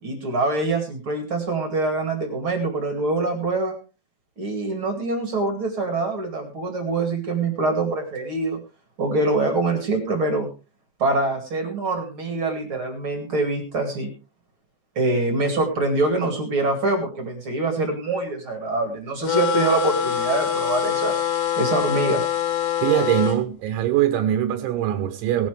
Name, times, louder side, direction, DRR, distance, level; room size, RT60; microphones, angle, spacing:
voice 1, 0.0-3.7 4.4-8.6 9.0-10.5 11.0-14.1 15.0-21.1 21.6-22.2, right 2 dB, 40° right, 5 dB, 1.9 m, -24 dB
sound 1, 19.2-23.4, left 8 dB, 85° left, 4.9 m, -24 dB
voice 2, 22.8-25.5, right 11 dB, 80° right, 9 dB, 3.2 m, -22 dB
18.0 x 11.5 x 3.3 m, 0.32 s
omnidirectional pair, 5.7 m